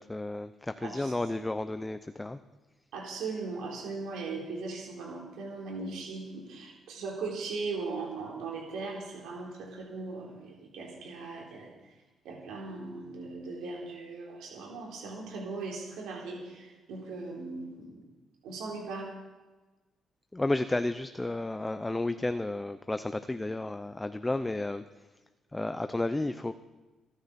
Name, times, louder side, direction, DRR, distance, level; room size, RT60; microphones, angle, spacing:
voice 1, 0.0-2.4 20.3-24.8 25.5-26.5, left 2 dB, 15° left, 10 dB, 0.6 m, -32 dB
voice 2, 0.8-1.1 2.9-11.7 12.2-18.0 18.4-19.1, right 3 dB, 90° right, -2 dB, 3.6 m, -39 dB
26.5 x 10.0 x 4.3 m, 1.2 s
cardioid pair, 90°, 0 cm